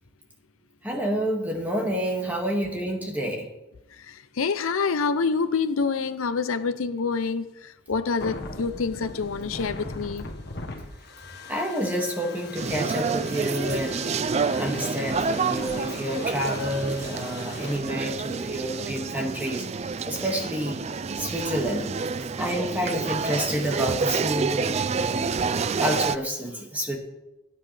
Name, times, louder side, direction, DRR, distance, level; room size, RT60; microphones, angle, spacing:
voice 1, 0.8-3.5 11.5-20.8 21.1-21.9 22.2-25.2 25.8-27.0, equal, 10° right, 2.0 m, -29 dB
voice 2, 3.9-10.2, left 5 dB, 75° left, 0.6 m, -27 dB
sound 1, 8.2-17.8, left 2 dB, 50° left, 1.5 m, -40 dB
sound 2, 12.5-26.2, right 5 dB, 30° right, 0.3 m, -28 dB
18.5 x 9.4 x 3.4 m
head